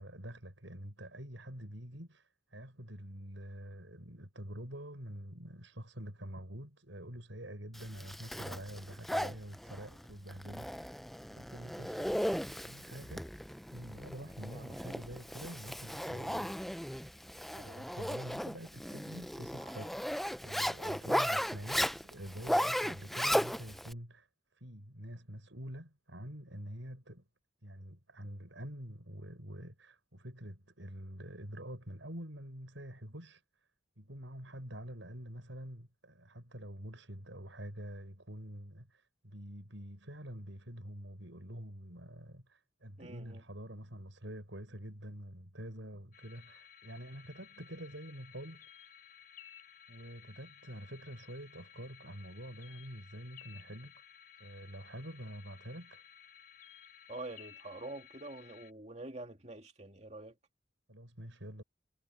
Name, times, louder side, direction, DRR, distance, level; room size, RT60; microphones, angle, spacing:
voice 1, 0.0-11.0 11.3-12.1 12.6-13.2 13.7-16.5 17.6-24.3 24.5-27.2 27.6-33.4 34.0-48.7 49.9-53.9 54.4-56.0 60.9-61.6, equal, 80° right, 6.7 m, -46 dB
Zipper (clothing), 7.7-23.9, equal, ahead, 0.4 m, -36 dB
voice 2, 43.0-43.4 57.1-60.3, right 2 dB, 35° right, 2.5 m, -46 dB
sound 1, 46.1-58.7, left 9 dB, 50° left, 7.0 m, -57 dB
head